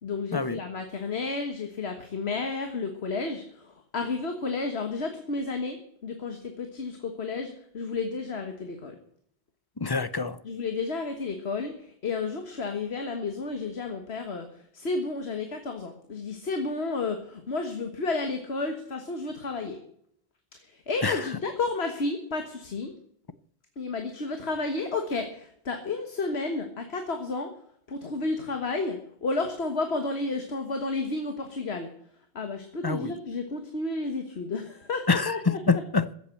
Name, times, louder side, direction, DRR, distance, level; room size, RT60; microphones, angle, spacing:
voice 1, 0.0-9.0 10.4-19.8 20.6-22.9 23.8-27.5 27.9-31.9 32.4-35.8, left 3 dB, 70° left, 1.7 m, -32 dB
voice 2, 9.8-10.4 21.0-21.2 32.8-33.1 35.1-36.2, left 4 dB, 25° left, 0.6 m, -26 dB
15.0 x 8.6 x 7.8 m
omnidirectional pair, 1.1 m